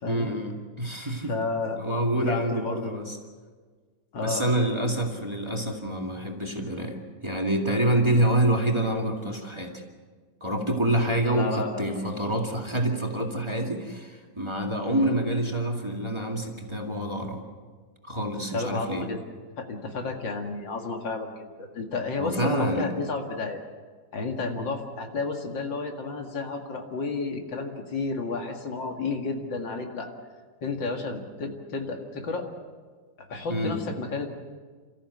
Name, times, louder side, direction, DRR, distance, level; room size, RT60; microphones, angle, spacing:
voice 1, 0.1-1.3 1.8-3.2 4.2-9.8 10.4-17.4 18.0-19.1 22.2-22.9 33.5-33.8, right 1 dB, 15° right, 1 dB, 2.1 m, -27 dB
voice 2, 1.3-1.8 2.1-2.9 4.1-4.5 11.2-11.8 14.9-15.2 18.5-19.2 19.6-23.6 24.1-30.1 30.6-32.5 33.2-34.3, left 3 dB, 75° left, 3 dB, 2.7 m, -31 dB
28.5 x 14.0 x 8.0 m, 1.5 s
omnidirectional pair, 2.1 m